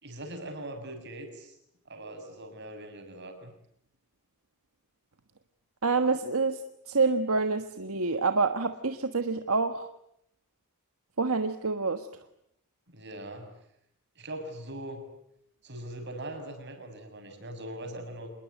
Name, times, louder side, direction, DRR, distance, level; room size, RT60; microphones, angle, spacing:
voice 1, 0.0-1.6 1.8-3.5 12.9-13.5 14.1-15.0 15.6-18.3, right 1 dB, 50° right, 6 dB, 6.3 m, -41 dB
voice 2, 5.8-6.6 6.9-9.9 11.2-12.1, right 4 dB, 75° right, 8 dB, 1.4 m, -27 dB
27.0 x 21.0 x 9.2 m, 0.75 s
head